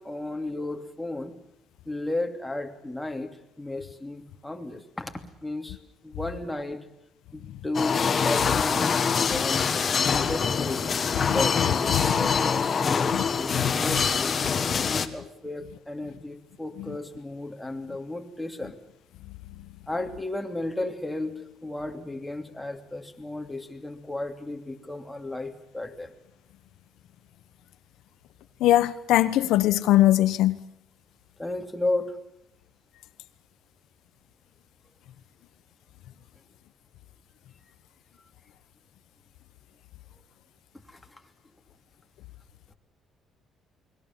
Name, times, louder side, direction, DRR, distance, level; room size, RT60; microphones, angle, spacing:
voice 1, 0.0-1.4 1.9-5.8 6.0-6.9 7.3-9.7 10.1-14.4 14.8-18.8 19.9-21.3 21.6-26.1 31.4-32.2 40.9-41.0, left 2 dB, 5° left, 3 dB, 2.9 m, -34 dB
sound 1, 7.7-15.1, left 6 dB, 35° left, 1.8 m, -25 dB
voice 2, 11.2-12.3 13.1-13.3 13.5-13.7 28.6-30.6, left 14 dB, 85° left, 11 dB, 1.1 m, -22 dB
29.0 x 21.5 x 7.5 m, 0.82 s
cardioid pair, 130°, 0 cm